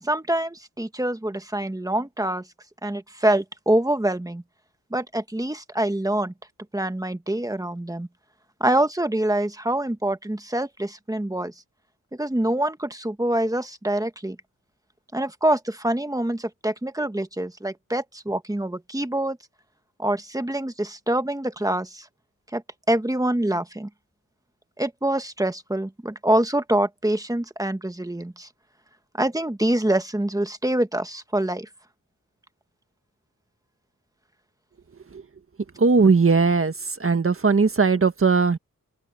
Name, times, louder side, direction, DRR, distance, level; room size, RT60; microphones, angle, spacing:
voice 1, 0.0-2.4 2.8-4.4 4.9-6.3 6.7-8.1 8.6-11.5 12.1-14.4 15.1-19.4 20.0-22.1 22.5-22.6 22.9-23.9 24.8-28.5 29.2-31.7, right 1 dB, 10° right, 1.4 m, -25 dB
voice 2, 35.8-36.7 37.0-38.6, right 4 dB, 40° right, 1.7 m, -18 dB
open air
wide cardioid pair, 105°, 33 cm